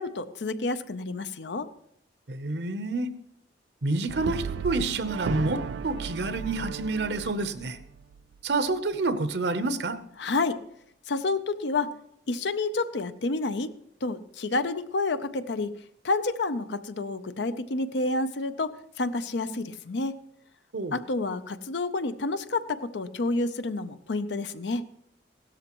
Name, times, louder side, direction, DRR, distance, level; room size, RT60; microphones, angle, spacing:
voice 1, 0.0-1.7 10.2-10.6 11.1-11.9 12.3-13.7 14.0-15.7 16.0-20.2 20.9-24.8, left 3 dB, 75° left, 12 dB, 0.7 m, -29 dB
voice 2, 2.3-3.1 3.8-7.8 8.4-10.0 20.7-21.0, right 2 dB, 65° right, 11 dB, 0.8 m, -28 dB
Brass instrument, 4.1-8.4, right 6 dB, 85° right, 0.3 m, -35 dB
16.0 x 13.0 x 3.0 m, 0.74 s
head